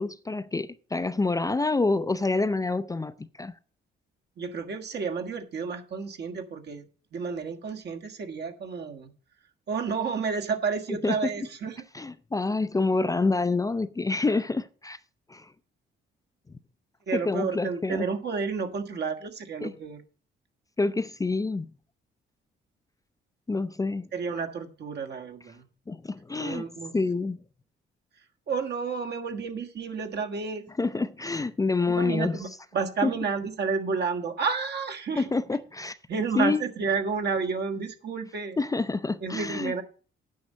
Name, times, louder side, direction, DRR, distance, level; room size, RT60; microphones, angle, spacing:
voice 1, 0.0-3.5 11.0-11.3 11.9-15.0 15.3-15.5 17.1-18.1 19.6-19.7 20.8-21.7 23.5-24.1 25.9-26.6 26.9-27.4 30.8-32.4 33.0-33.1 35.2-36.0 36.4-36.6 38.6-39.8, left 3 dB, 15° left, 0.5 m, -27 dB
voice 2, 4.4-6.8 7.1-9.1 9.7-11.8 17.1-20.0 24.1-25.6 26.4-26.9 28.5-30.6 31.8-35.3 36.1-38.6 39.2-39.8, right 5 dB, 55° right, 1.5 m, -31 dB
9.3 x 5.4 x 7.3 m
cardioid pair, 90°, 20 cm